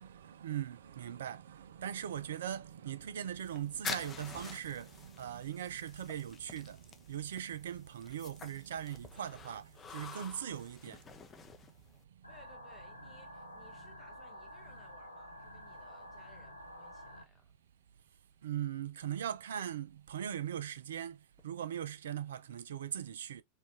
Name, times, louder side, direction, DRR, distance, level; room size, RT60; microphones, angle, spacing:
voice 1, 0.0-11.0 13.5-13.6 18.4-23.4, right 10 dB, 60° right, 0.3 m, -40 dB
sound 1, 3.4-12.0, left 6 dB, 20° left, 0.5 m, -48 dB
sound 2, 12.2-17.2, equal, 85° left, 0.7 m, -50 dB
voice 2, 12.3-17.5, left 1 dB, 5° left, 1.2 m, -62 dB
4.4 x 2.4 x 2.6 m
figure-of-eight pair, 90°, 0 cm